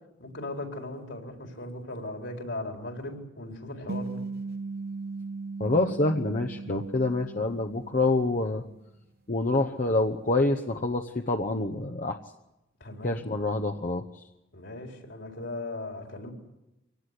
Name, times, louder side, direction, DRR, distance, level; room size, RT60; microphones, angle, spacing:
voice 1, 0.2-4.2 12.8-13.2 14.5-16.3, left 2 dB, 70° left, 2 dB, 4.3 m, -38 dB
sound 1, 3.9-8.5, right 3 dB, 55° right, 0.8 m, -38 dB
voice 2, 5.6-8.6 9.3-12.2 13.0-14.0, left 2 dB, 45° left, 3 dB, 1.0 m, -26 dB
25.5 x 19.0 x 8.3 m, 0.94 s
head